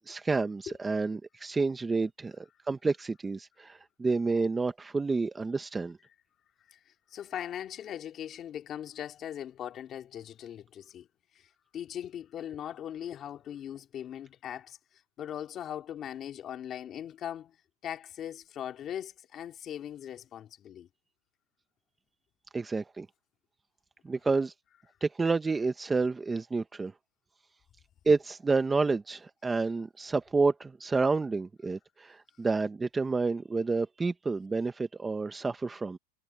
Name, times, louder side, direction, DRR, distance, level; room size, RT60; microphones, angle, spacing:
voice 1, 0.1-6.0 22.5-23.1 24.0-24.5 25.0-26.9 28.0-36.0, right 4 dB, 10° right, 0.8 m, -29 dB
voice 2, 6.7-11.1 11.3-14.8 15.2-17.6 17.8-20.9, left 10 dB, 25° left, 2.5 m, -40 dB
supercardioid pair, 160°, 0 cm